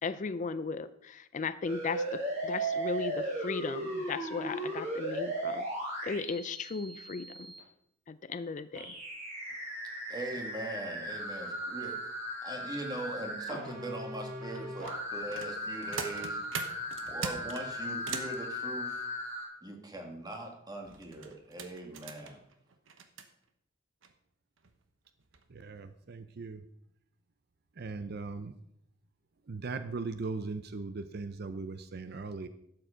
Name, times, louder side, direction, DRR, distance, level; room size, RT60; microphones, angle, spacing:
voice 1, 0.0-5.6 6.0-7.3 8.1-8.9, left 4 dB, 40° left, 14 dB, 0.4 m, -36 dB
sound 1, 1.6-7.6 8.7-19.4, right 1 dB, 40° right, 5.5 m, -37 dB
voice 2, 10.1-12.0 12.4-16.4 17.1-19.1 19.6-22.4, right 1 dB, 20° right, 2 dB, 1.9 m, -41 dB
sound 2, 14.5-18.4 20.8-23.3 24.0-24.1 24.6-24.7 25.2-25.4 25.8-25.9, right 5 dB, 85° right, 1.1 m, -42 dB
voice 3, 25.5-26.7 27.8-28.5 29.5-32.5, right 3 dB, 55° right, 11 dB, 0.6 m, -39 dB
12.0 x 7.7 x 5.0 m, 0.76 s
head